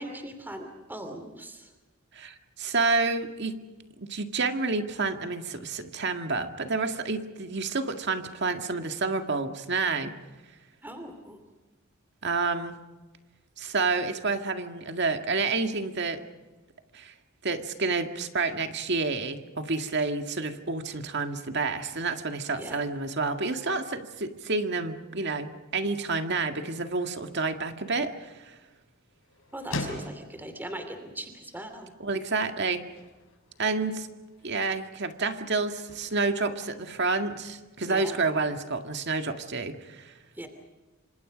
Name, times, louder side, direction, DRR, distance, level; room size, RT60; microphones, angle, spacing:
voice 1, 0.0-1.7 10.8-11.4 22.6-22.8 29.5-31.9 37.9-38.2 40.4-40.5, right 1 dB, 10° right, 6 dB, 2.8 m, -39 dB
voice 2, 2.1-3.6 4.0-10.1 12.2-12.8 13.6-16.2 16.9-17.1 17.4-28.5 32.0-32.8 33.6-34.1 34.4-40.1, right 3 dB, 55° right, 6 dB, 2.0 m, -29 dB
sound 1, 27.7-37.4, left 2 dB, 80° left, 5.9 m, -44 dB
27.5 x 26.0 x 5.2 m, 1.2 s
head